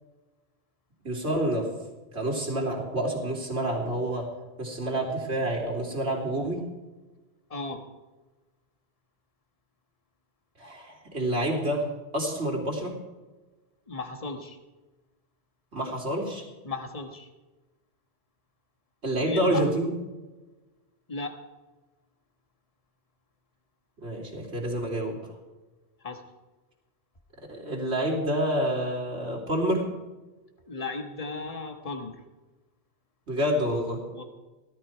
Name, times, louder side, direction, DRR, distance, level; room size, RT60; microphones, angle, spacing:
voice 1, 1.0-1.7 2.1-4.3 4.6-6.6 10.6-12.9 15.7-16.4 19.0-19.9 24.0-25.2 27.5-29.8 33.3-34.0, right 1 dB, 80° right, -1 dB, 3.4 m, -28 dB
voice 2, 7.5-7.8 13.9-14.6 16.6-17.3 19.2-19.6 21.1-21.4 26.0-26.2 30.7-32.1 34.1-34.2, left 3 dB, 35° left, 5 dB, 1.5 m, -35 dB
17.0 x 12.5 x 4.6 m, 1.2 s
omnidirectional pair, 1.1 m